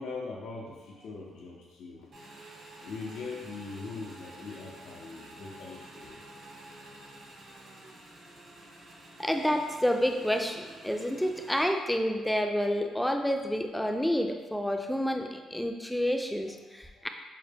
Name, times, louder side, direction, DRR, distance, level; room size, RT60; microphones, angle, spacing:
voice 1, 0.0-2.1 2.8-6.2 17.0-17.1, left 4 dB, 90° left, -3 dB, 0.6 m, -41 dB
Motorcycle / Engine, 2.1-11.6, right 1 dB, 65° right, 1.1 m, -50 dB
voice 2, 9.2-17.1, equal, 5° left, 4 dB, 0.3 m, -29 dB
5.5 x 2.2 x 3.4 m, 1.3 s
cardioid pair, 90°, 0 cm